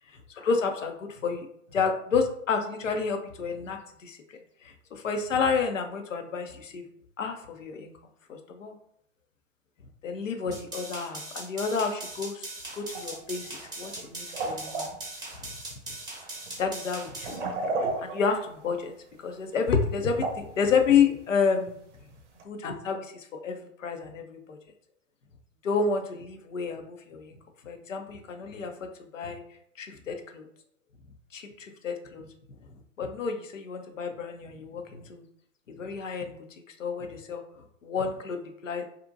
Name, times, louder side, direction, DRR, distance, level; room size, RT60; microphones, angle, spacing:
voice 1, 0.3-4.2 4.6-6.9 7.2-7.9 8.3-8.7 10.0-12.5 12.7-14.9 16.6-17.4 17.8-18.9 19.2-21.8 22.5-24.6 25.6-27.4 27.6-29.4 29.8-30.5 31.3-32.3 33.0-35.3 35.7-36.4 36.8-37.4 37.8-38.8, left 5 dB, 80° left, 5 dB, 0.5 m, -30 dB
sound 1, 10.5-17.4, right 2 dB, 10° right, 0.7 m, -40 dB
sound 2, 12.9-13.2 13.4-14.1 14.3-15.0 16.0-16.1 16.5-16.7 17.2-18.8 19.7-19.9 20.2-20.6 21.2-21.3 21.7-21.8 22.4-22.5, right 3 dB, 65° right, 0.6 m, -32 dB
2.5 x 2.1 x 2.5 m, 0.69 s
figure-of-eight pair, 105°, 38 cm